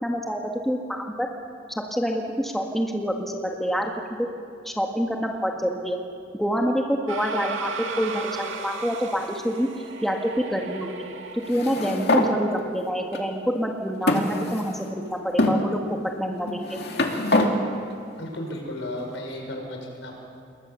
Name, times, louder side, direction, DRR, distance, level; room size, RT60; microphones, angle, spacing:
voice 1, 0.0-1.3 1.9-3.9 4.7-6.0 6.3-7.7 8.0-9.7 10.0-11.0 11.3-15.8 16.2-16.8, equal, ahead, 1 dB, 1.7 m, -27 dB
sound 1, 7.1-12.1, right 4 dB, 80° right, 2.0 m, -36 dB
sound 2, 11.5-12.3 13.1-13.2 14.1-14.9 15.4-15.6 16.5-17.5, left 2 dB, 55° left, 2.5 m, -23 dB
voice 2, 18.2-20.1, left 1 dB, 75° left, 2 dB, 5.8 m, -34 dB
28.5 x 21.5 x 7.0 m, 2.5 s
head